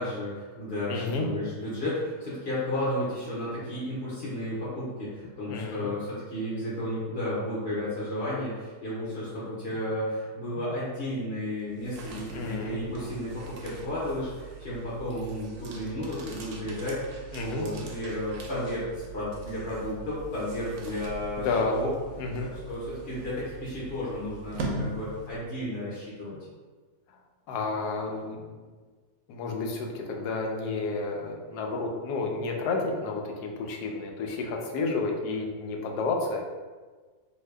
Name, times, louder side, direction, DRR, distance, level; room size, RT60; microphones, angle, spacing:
voice 1, 0.0-21.9 22.7-26.4, left 1 dB, 50° left, -9 dB, 0.8 m, -33 dB
voice 2, 0.9-1.3 5.5-5.9 12.3-12.8 17.3-17.7 21.4-21.7 22.2-22.5 27.1-27.2 27.5-28.7 29.3-36.4, left 3 dB, 90° left, 1 dB, 1.1 m, -31 dB
sound 1, 11.6-25.7, right 3 dB, 65° right, 0.8 m, -41 dB
2.7 x 2.6 x 3.2 m, 1.4 s
omnidirectional pair, 1.7 m